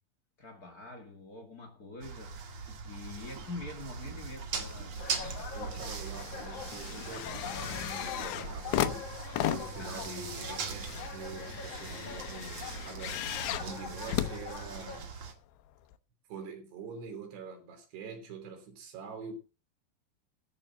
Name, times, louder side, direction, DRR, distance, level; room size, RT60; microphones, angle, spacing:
voice 1, 0.4-5.5 9.8-10.3, left 2 dB, 45° left, 1.1 m, -46 dB
sound 1, 2.0-15.3, right 5 dB, 45° right, 2.7 m, -41 dB
sound 2, 4.7-5.4 5.7-15.1 15.9-16.0, left 12 dB, 80° left, 3.0 m, -36 dB
sound 3, 5.0-15.0, left 7 dB, 60° left, 1.6 m, -45 dB
voice 2, 5.5-9.1 9.5-15.1 16.3-19.3, right 5 dB, 70° right, 5.3 m, -45 dB
13.5 x 5.9 x 7.5 m
omnidirectional pair, 5.0 m